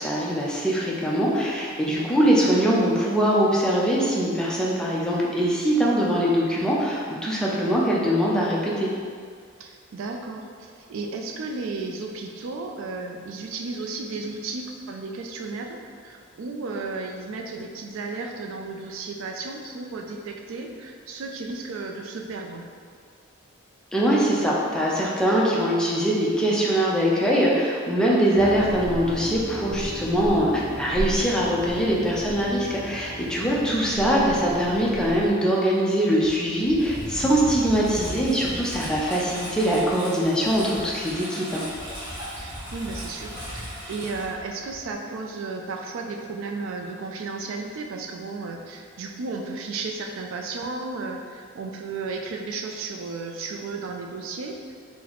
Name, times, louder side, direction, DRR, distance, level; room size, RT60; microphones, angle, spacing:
voice 1, 0.0-8.9 23.9-41.6, equal, 5° left, -5 dB, 0.4 m, -22 dB
voice 2, 9.6-22.6 33.5-33.7 41.0-41.1 42.4-54.7, right 3 dB, 65° right, 2 dB, 0.3 m, -34 dB
sound 1, 28.3-35.3, right 1 dB, 30° left, 1.1 m, -35 dB
Engine, 36.2-44.9, equal, 20° right, 0.9 m, -37 dB
3.9 x 2.0 x 2.9 m, 2.1 s
head